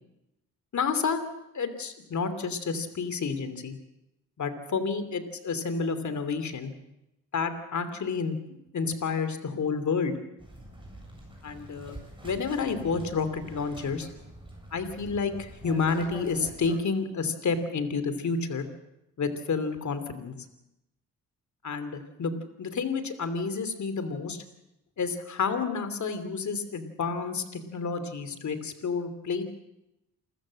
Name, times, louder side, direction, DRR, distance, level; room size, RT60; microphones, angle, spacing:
voice 1, 0.7-1.2 1.5-3.8 4.4-6.7 7.3-8.4 8.7-10.1 11.4-12.0 12.2-14.1 14.7-18.7 19.2-20.3 21.6-24.4 25.0-27.4 27.7-29.4, left 5 dB, 55° left, 11 dB, 2.9 m, -30 dB
sound 1, 10.4-16.8, right 1 dB, 15° right, 7.8 m, -45 dB
28.0 x 14.5 x 7.7 m, 0.90 s
cardioid pair, 80°, 34 cm